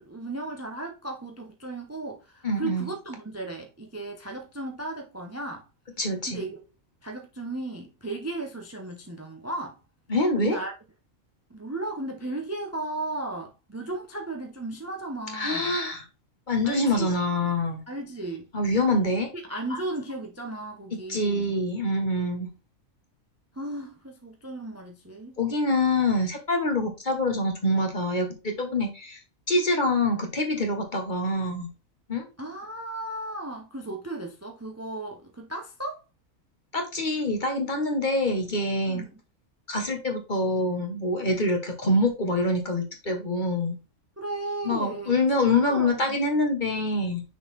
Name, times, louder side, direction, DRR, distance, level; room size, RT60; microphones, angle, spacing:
voice 1, 0.0-5.6 6.3-6.6 7.0-9.8 10.4-10.7 11.5-15.8 16.6-17.1 17.9-18.5 19.5-21.6 23.5-25.3 32.4-36.0 38.8-39.2 44.2-45.2 45.4-46.2, right 2 dB, 15° right, 0.7 m, -35 dB
voice 2, 2.4-2.9 6.0-6.4 10.1-10.6 15.3-16.1 16.5-17.8 18.5-19.3 20.9-22.5 25.4-29.2 29.5-31.7 32.1-32.3 36.7-39.0 39.7-43.7 44.6-47.2, left 2 dB, 35° left, 1.3 m, -25 dB
6.3 x 4.0 x 4.1 m
omnidirectional pair, 1.4 m